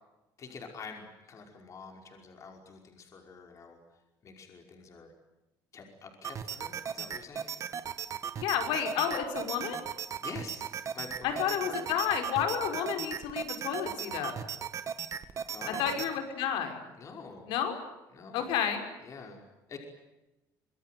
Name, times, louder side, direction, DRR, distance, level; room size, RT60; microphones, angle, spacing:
voice 1, 0.4-3.8 4.2-5.1 5.7-7.5 10.2-10.7 10.9-12.0 15.5-16.1 17.0-17.5 18.1-18.6 19.0-19.4 19.7-19.8, left 4 dB, 40° left, 3 dB, 5.3 m, -46 dB
sound 1, 6.2-16.1, right 8 dB, 40° right, 1.8 m, -37 dB
voice 2, 8.4-9.8 11.2-14.3 15.7-16.8 17.5-17.8 18.3-18.8, left 8 dB, 90° left, 6 dB, 5.4 m, -31 dB
26.0 x 22.0 x 9.4 m, 0.99 s
cardioid pair, 130°, 8 cm